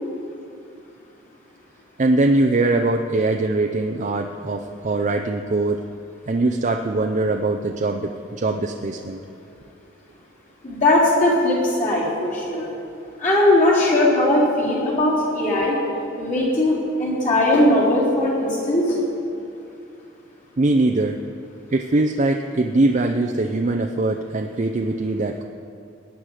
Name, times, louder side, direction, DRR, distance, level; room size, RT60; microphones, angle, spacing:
voice 1, 2.0-5.8 6.3-9.2 20.6-21.2 21.7-25.4, right 2 dB, 40° right, 4 dB, 0.5 m, -22 dB
voice 2, 10.6-12.7 13.2-15.8 16.2-19.0, left 1 dB, 45° left, -7 dB, 4.0 m, -19 dB
20.0 x 9.3 x 5.0 m, 2.5 s
head